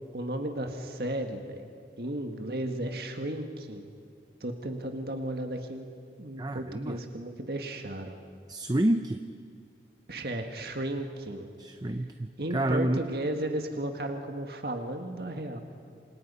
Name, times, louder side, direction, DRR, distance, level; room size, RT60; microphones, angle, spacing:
voice 1, 0.1-1.6 2.0-3.8 4.4-5.9 6.2-8.2 10.1-11.5 12.4-15.6, right 1 dB, 60° right, 4 dB, 1.8 m, -34 dB
voice 2, 6.4-7.0 8.5-9.2 11.6-13.0, right 1 dB, 25° right, 8 dB, 0.7 m, -29 dB
28.5 x 27.0 x 5.6 m, 2.3 s
head